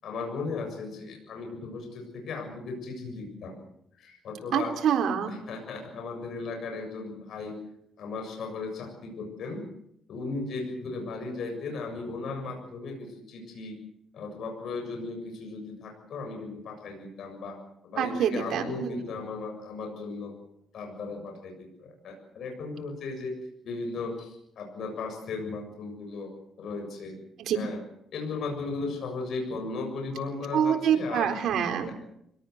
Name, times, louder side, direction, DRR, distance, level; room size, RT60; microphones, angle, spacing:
voice 1, 0.0-3.6 4.0-4.7 5.3-7.6 8.0-9.7 10.1-13.8 14.1-17.6 17.8-20.3 20.7-23.4 23.6-26.3 26.6-27.2 27.5-27.8 28.1-31.4 31.8-31.9, left 3 dB, 70° left, 3 dB, 7.2 m, -36 dB
voice 2, 4.5-5.3 18.0-19.0 27.4-27.6 30.5-32.0, right 8 dB, 70° right, 4 dB, 4.1 m, -26 dB
25.5 x 18.0 x 8.1 m, 0.75 s
cardioid pair, 90°, 0 cm